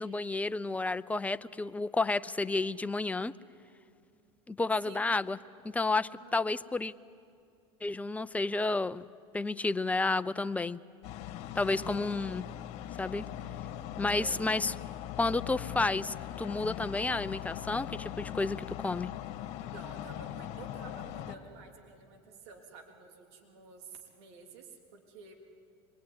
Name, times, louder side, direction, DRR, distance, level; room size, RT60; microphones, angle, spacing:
voice 1, 0.0-3.3 4.5-5.4 5.7-6.9 7.8-9.0 9.3-10.8 11.6-12.4 13.0-13.2 14.0-14.7 15.2-19.1, left 3 dB, 10° left, 13 dB, 0.6 m, -31 dB
voice 2, 4.8-5.2 6.2-6.5 11.7-12.3 14.2-14.4 19.7-25.3, right 5 dB, 75° right, 2 dB, 3.4 m, -51 dB
sound 1, 11.0-21.3, left 11 dB, 60° left, 1.8 m, -40 dB
25.5 x 22.5 x 9.6 m, 2.3 s
supercardioid pair, 105°, 14 cm